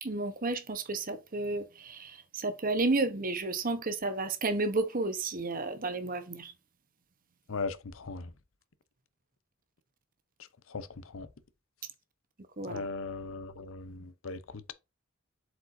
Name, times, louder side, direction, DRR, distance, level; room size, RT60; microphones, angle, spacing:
voice 1, 0.0-6.5 12.6-12.8, right 3 dB, 40° right, 1.0 m, -32 dB
voice 2, 7.5-8.3 10.7-10.9 11.1-11.3 12.7-14.7, left 4 dB, 70° left, 0.7 m, -38 dB
7.7 x 4.9 x 2.7 m
head